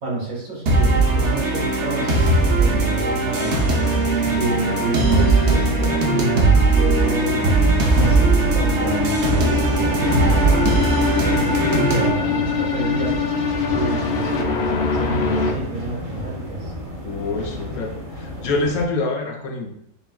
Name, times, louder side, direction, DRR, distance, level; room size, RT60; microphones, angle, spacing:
voice 1, 0.0-3.7 4.3-7.4 7.9-10.8 11.1-13.1 13.7-16.7, right 3 dB, 75° right, -4 dB, 2.0 m, -29 dB
sound 1, 0.7-12.1, right 3 dB, 60° right, 0.9 m, -19 dB
voice 2, 3.4-3.8 17.0-17.9 18.2-19.7, left 3 dB, 85° left, 2 dB, 1.2 m, -26 dB
sound 2, 7.3-18.8, left 1 dB, 35° right, 0.6 m, -29 dB
sound 3, 7.5-15.5, left 5 dB, 60° left, 0.7 m, -25 dB
6.9 x 2.4 x 2.2 m, 0.71 s
omnidirectional pair, 1.5 m